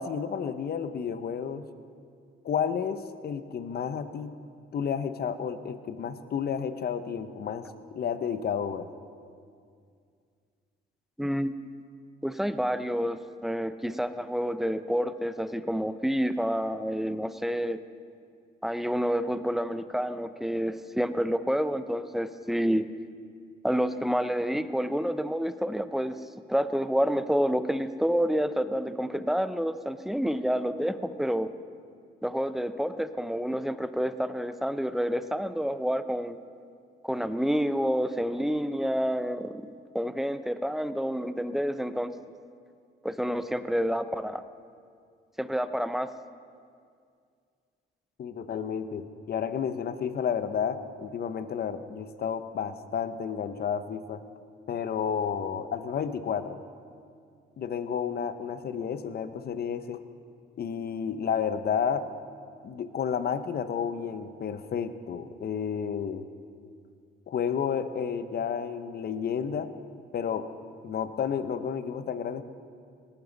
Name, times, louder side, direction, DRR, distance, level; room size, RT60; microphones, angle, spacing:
voice 1, 0.0-1.7 2.4-4.3 4.7-7.7 7.9-8.9 48.2-54.2 54.7-56.6 57.6-60.0 60.6-62.1 62.6-66.3 67.3-69.7 70.1-70.5 70.8-72.4, left 7 dB, 50° left, 11 dB, 0.9 m, -31 dB
voice 2, 11.2-11.6 12.2-17.8 18.6-22.9 23.6-26.2 26.5-31.5 32.2-36.4 37.0-39.7 39.9-42.1 43.0-44.4 45.4-46.1, equal, ahead, 11 dB, 0.6 m, -28 dB
19.0 x 14.5 x 4.0 m, 2.2 s
cardioid pair, 90°, 20 cm